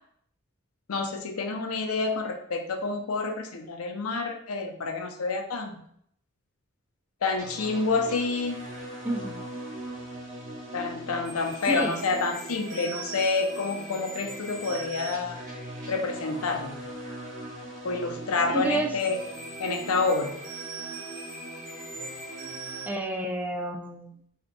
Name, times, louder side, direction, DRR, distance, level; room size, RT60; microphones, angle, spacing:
voice 1, 0.9-5.8 7.2-8.6 10.7-15.4 15.9-16.8 17.8-19.2 19.6-20.4, left 3 dB, 80° left, 5 dB, 0.6 m, -28 dB
sound 1, 7.4-22.9, right 2 dB, 35° right, 1.2 m, -39 dB
voice 2, 9.0-9.3 11.7-12.0 18.5-18.9 22.9-24.1, right 1 dB, 10° right, 2 dB, 0.4 m, -29 dB
4.9 x 2.8 x 2.2 m, 0.68 s
head